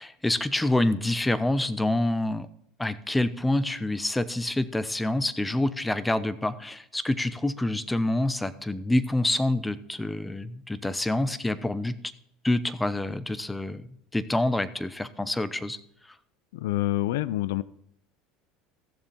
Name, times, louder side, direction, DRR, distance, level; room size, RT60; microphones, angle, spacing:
voice 1, 0.0-2.5 2.8-12.0 12.4-13.8 14.1-15.8, left 1 dB, 10° left, 15 dB, 0.9 m, -27 dB
voice 2, 16.5-17.6, left 15 dB, 80° left, 20 dB, 0.4 m, -27 dB
15.5 x 7.1 x 4.3 m, 0.71 s
supercardioid pair, 90°, 0 cm